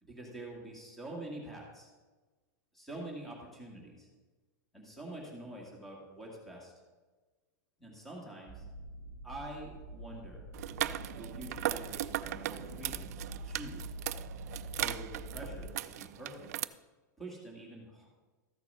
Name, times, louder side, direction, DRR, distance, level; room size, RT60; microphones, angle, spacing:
voice 1, 0.0-1.9 2.7-4.1 4.7-6.7 7.8-8.6 9.2-10.5 11.2-13.9 14.8-16.5 17.2-18.1, right 1 dB, ahead, -2 dB, 1.8 m, -46 dB
sound 1, 8.5-15.7, right 1 dB, 20° left, 4.2 m, -46 dB
sound 2, 10.5-16.6, right 13 dB, 55° right, 0.4 m, -38 dB
13.5 x 7.0 x 5.5 m, 1.3 s
supercardioid pair, 170°, 10 cm